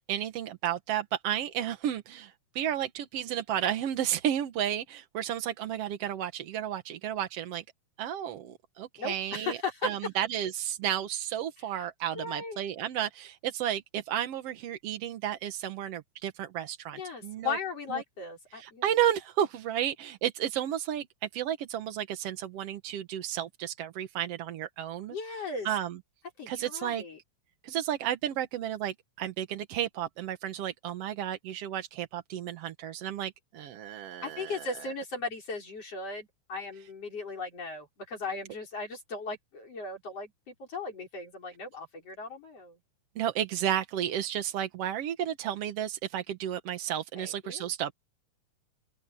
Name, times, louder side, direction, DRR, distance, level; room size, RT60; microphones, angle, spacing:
voice 1, 0.0-7.6 8.0-17.6 17.9-18.0 18.5-25.2 25.7-26.0 26.5-27.0 27.6-34.7 43.2-47.9, right 11 dB, 60° right, 1.8 m, -32 dB
voice 2, 9.0-9.9 12.1-12.6 16.9-18.8 25.1-25.7 26.4-27.2 34.2-42.8 47.2-47.7, left 3 dB, 50° left, 6.1 m, -37 dB
open air
omnidirectional pair, 3.5 m